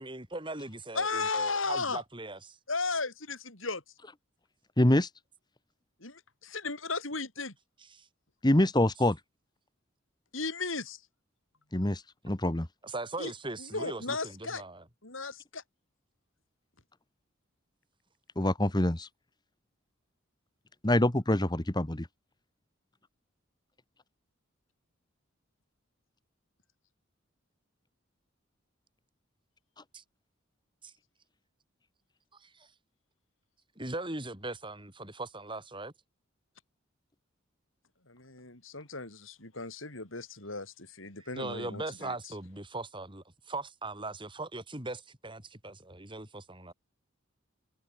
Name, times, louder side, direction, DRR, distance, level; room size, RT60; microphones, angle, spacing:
voice 1, 0.0-2.6 7.9-8.1 12.8-14.8 29.9-30.0 30.8-30.9 32.4-32.7 33.8-35.9 41.2-46.7, right 2 dB, 25° right, 7.6 m, -40 dB
voice 2, 0.9-2.0 2.7-3.8 6.0-7.5 10.3-11.0 13.2-13.3 13.6-14.6 15.0-15.6 38.1-42.2, left 4 dB, 80° left, 7.1 m, -35 dB
voice 3, 4.8-5.1 8.4-9.2 11.7-12.7 18.4-19.1 20.8-22.1, left 1 dB, 20° left, 1.4 m, -25 dB
head